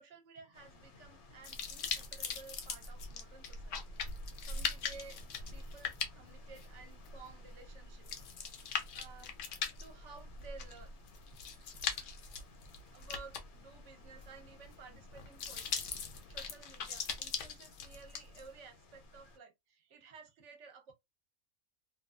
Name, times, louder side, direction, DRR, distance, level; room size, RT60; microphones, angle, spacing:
voice 1, 0.0-3.8 4.2-5.2 5.5-9.3 9.8-10.9 11.5-12.2 12.8-16.0 16.3-20.9, right 4 dB, 65° right, 1.0 m, -55 dB
sound 1, 0.5-19.4, equal, 80° left, 1.3 m, -52 dB
sound 2, 1.4-18.4, left 7 dB, 65° left, 0.9 m, -41 dB
2.7 x 2.3 x 2.3 m
omnidirectional pair, 1.5 m